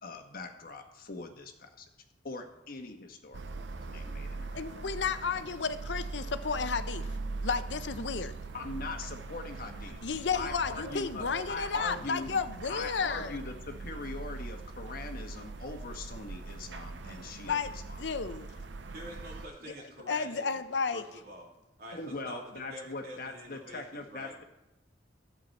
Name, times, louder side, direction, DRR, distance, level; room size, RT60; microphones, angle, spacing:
voice 1, 0.0-1.8 2.2-4.6 8.5-10.0 10.3-12.3 12.7-18.0 21.9-24.4, left 3 dB, 55° left, 5 dB, 1.4 m, -41 dB
sound 1, 3.3-19.5, right 3 dB, 80° right, 0.7 m, -41 dB
voice 2, 4.5-7.1 7.4-8.3 10.0-13.4 17.5-18.5 20.1-21.0, left 5 dB, 70° left, 11 dB, 0.7 m, -32 dB
voice 3, 18.9-20.6 20.9-21.5 21.8-24.3, equal, 60° right, -2 dB, 3.1 m, -48 dB
14.0 x 8.4 x 4.2 m, 0.92 s
head